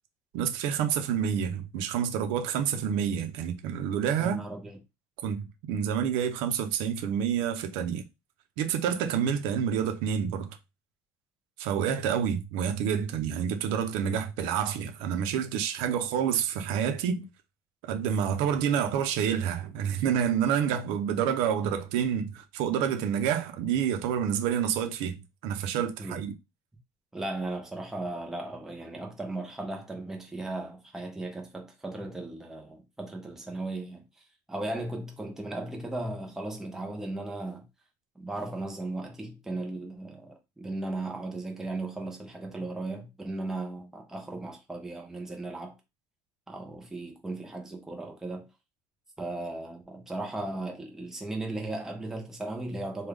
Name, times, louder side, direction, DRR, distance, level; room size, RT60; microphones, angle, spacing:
voice 1, 0.3-4.4 5.2-8.0 8.6-10.6 11.6-17.3 17.8-26.3, right 8 dB, 80° right, 0.6 m, -28 dB
voice 2, 4.2-4.8 26.0-26.2 27.1-34.0 34.5-37.7 38.2-45.7 46.5-48.5 49.2-53.1, right 2 dB, 5° right, 0.6 m, -36 dB
3.3 x 2.3 x 3.4 m
cardioid pair, 165°, 9 cm